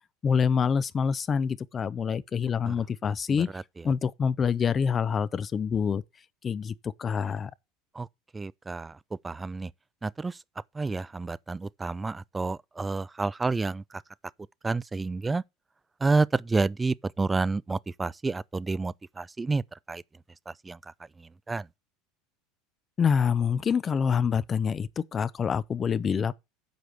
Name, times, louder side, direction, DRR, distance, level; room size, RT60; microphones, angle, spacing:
voice 1, 0.2-3.5 3.8-6.0 6.4-7.5 23.0-26.3, left 6 dB, 30° left, 0.6 m, -26 dB
voice 2, 8.3-9.0 9.2-9.7 10.0-10.4 10.7-13.8 14.6-15.4 16.0-19.6 19.9-20.0 20.5-20.8 21.5-21.7, right 3 dB, 15° right, 0.4 m, -29 dB
7.9 x 5.0 x 6.6 m
hypercardioid pair, 90°, 0 cm